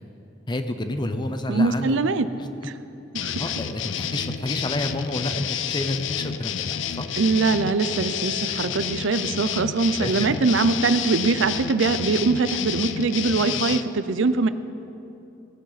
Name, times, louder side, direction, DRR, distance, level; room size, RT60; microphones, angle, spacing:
voice 1, 0.5-2.0 3.4-7.1 10.0-10.1, left 1 dB, 25° left, 8 dB, 0.7 m, -29 dB
voice 2, 1.5-2.3 2.6-2.7 3.1-3.5 7.2-14.5, right 4 dB, 80° right, 12 dB, 0.5 m, -22 dB
sound 1, 3.1-13.8, left 8 dB, 80° left, 0.5 m, -30 dB
18.0 x 10.0 x 4.1 m, 2.8 s
head